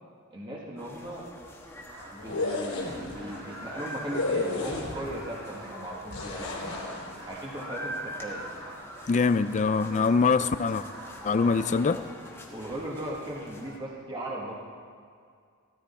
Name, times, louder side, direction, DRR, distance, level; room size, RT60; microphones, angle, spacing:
voice 1, 0.3-1.2 2.1-6.9 7.3-8.4 12.5-14.5, right 1 dB, 20° right, 1.4 m, -38 dB
sound 1, 0.8-13.8, equal, 10° left, 1.4 m, -44 dB
sound 2, 1.9-11.7, right 1 dB, 65° right, 3.4 m, -46 dB
sound 3, 2.2-3.1 4.1-5.2 6.1-7.1, left 2 dB, 85° left, 3.2 m, -32 dB
voice 2, 9.1-10.8 11.2-12.0, left 4 dB, 35° left, 0.3 m, -23 dB
15.5 x 13.5 x 4.2 m
head